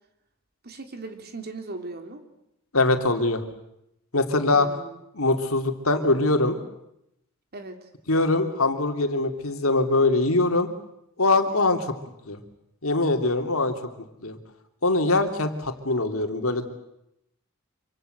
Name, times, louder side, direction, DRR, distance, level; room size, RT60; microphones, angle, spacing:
voice 1, 0.6-2.2 4.5-5.0 7.5-7.8, right 2 dB, 50° right, 6 dB, 3.2 m, -38 dB
voice 2, 2.7-3.4 4.1-4.7 5.1-6.6 8.1-10.7 11.2-11.9 12.3-12.4 12.8-13.7 14.2-14.4 14.8-16.7, left 2 dB, 85° left, 7 dB, 2.8 m, -22 dB
26.0 x 25.5 x 7.9 m, 0.82 s
head